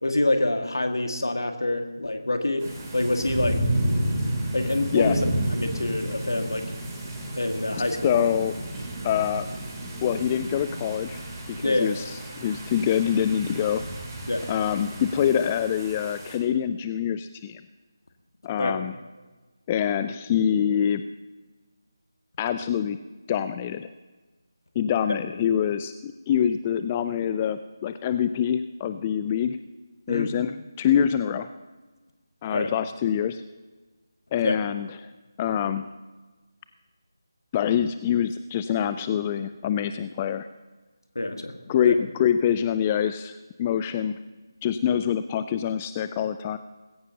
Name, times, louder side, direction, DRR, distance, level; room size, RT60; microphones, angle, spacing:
voice 1, 0.0-3.6 4.5-5.3 5.5-6.7 7.4-8.2 11.6-12.0 14.3-14.5 18.6-18.7 30.1-30.3 32.5-32.7 34.4-34.6 41.2-41.6 41.8-41.9, left 2 dB, 70° left, 6 dB, 1.8 m, -26 dB
sound 1, 2.6-16.3, right 1 dB, 15° right, 2.9 m, -31 dB
voice 2, 8.0-8.5 9.0-9.5 10.0-11.2 11.5-12.0 12.4-13.8 14.5-17.6 18.4-19.0 19.7-21.0 22.4-23.0 23.3-23.9 24.8-29.6 30.1-31.5 32.4-33.4 34.3-35.1 35.4-36.0 37.5-40.5 41.7-44.2 44.6-46.6, left 9 dB, 15° left, 11 dB, 0.3 m, -25 dB
19.5 x 16.0 x 2.8 m, 1.2 s
figure-of-eight pair, 160°, 2 cm